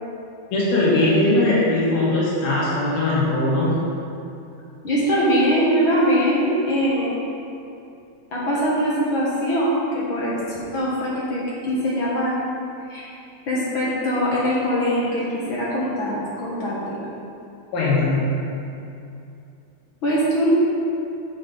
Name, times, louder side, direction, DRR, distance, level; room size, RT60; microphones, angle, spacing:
voice 1, 0.5-3.8 17.7-18.3, left 2 dB, 75° left, -7 dB, 3.1 m, -20 dB
voice 2, 4.8-7.2 8.3-12.3 12.9-13.1 13.5-17.1 20.0-20.5, equal, 55° left, -7 dB, 1.4 m, -22 dB
7.2 x 7.2 x 5.4 m, 2.7 s
omnidirectional pair, 4.3 m